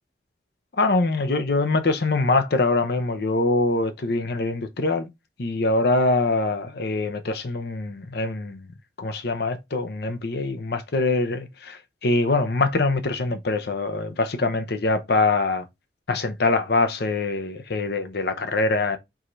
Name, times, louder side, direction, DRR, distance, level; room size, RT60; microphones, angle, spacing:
voice 1, 0.8-5.1 5.4-8.6 9.0-15.6 16.1-19.0, left 3 dB, 65° left, 0.7 m, -23 dB
4.8 x 4.3 x 2.6 m
head